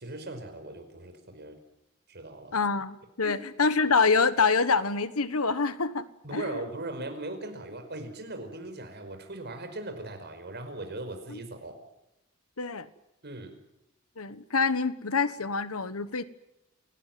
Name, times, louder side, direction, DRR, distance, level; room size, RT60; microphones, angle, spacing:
voice 1, 0.0-1.6 2.1-2.6 3.2-3.4 6.2-11.8 13.2-13.6, right 2 dB, 50° right, 6 dB, 5.2 m, -39 dB
voice 2, 2.5-6.0 6.3-6.6 11.3-11.4 12.6-12.9 14.2-16.2, left 4 dB, 75° left, 14 dB, 1.3 m, -26 dB
28.0 x 18.5 x 9.3 m, 0.88 s
head